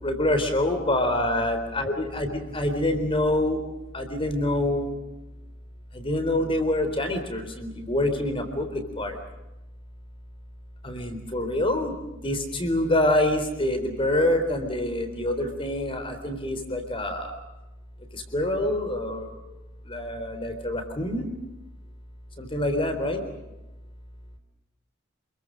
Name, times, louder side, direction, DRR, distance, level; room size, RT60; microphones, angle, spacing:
voice 1, 0.0-3.6 3.9-4.9 5.9-9.2 10.8-17.3 18.1-19.4 19.9-21.3 22.4-23.2, left 1 dB, 25° left, 7 dB, 3.9 m, -26 dB
28.5 x 22.5 x 6.5 m, 1.0 s
head